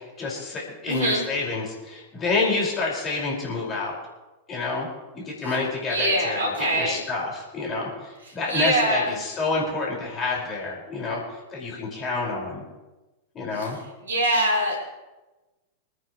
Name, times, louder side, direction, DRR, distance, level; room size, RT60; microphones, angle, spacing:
voice 1, 0.2-4.0 4.5-4.9 5.1-11.2 11.5-12.6 13.3-13.8, left 3 dB, 25° left, -3 dB, 5.0 m, -28 dB
voice 2, 0.9-1.2 5.4-5.6 5.9-7.0 8.2-9.1 13.5-13.7 14.0-14.8, right 1 dB, 70° right, -2 dB, 4.5 m, -24 dB
26.5 x 9.7 x 3.1 m, 1.1 s
figure-of-eight pair, 90°, 0 cm